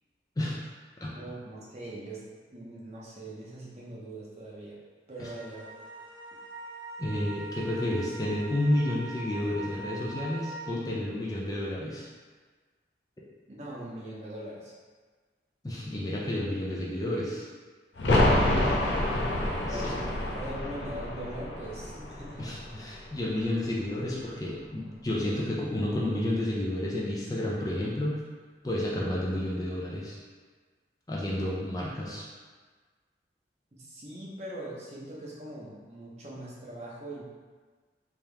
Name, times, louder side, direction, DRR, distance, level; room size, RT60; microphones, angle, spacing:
voice 1, 1.1-4.8 5.1-5.7 13.6-14.7 19.7-20.1 20.3-22.5 33.7-37.2, right 1 dB, 40° right, -6 dB, 0.8 m, -41 dB
sound 1, 5.2-10.7, right 2 dB, 70° right, 0.7 m, -42 dB
voice 2, 7.0-12.1 15.6-17.5 19.7-19.9 22.4-28.2 28.6-30.2 31.1-32.3, left 1 dB, 20° left, -5 dB, 0.5 m, -31 dB
sound 2, 18.0-23.5 23.8-23.9, left 1 dB, 90° left, 0.6 m, -28 dB
3.5 x 2.9 x 3.4 m, 1.5 s
head